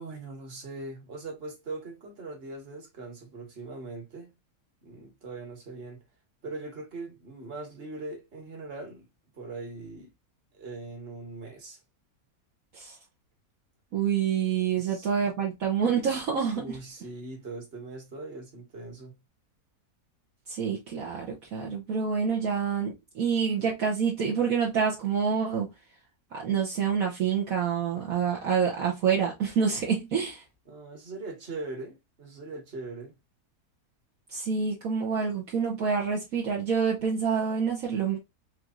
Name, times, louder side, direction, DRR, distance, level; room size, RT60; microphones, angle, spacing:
voice 1, 0.0-4.3 4.8-6.0 6.4-9.1 9.3-10.1 10.5-11.8 14.8-15.1 16.6-19.1 30.7-33.2, right 3 dB, 40° right, 1.7 m, -40 dB
voice 2, 13.9-16.6 20.5-25.7 26.3-30.4 34.3-38.2, right 6 dB, 60° right, 1.4 m, -27 dB
5.1 x 3.1 x 2.5 m
omnidirectional pair, 1.7 m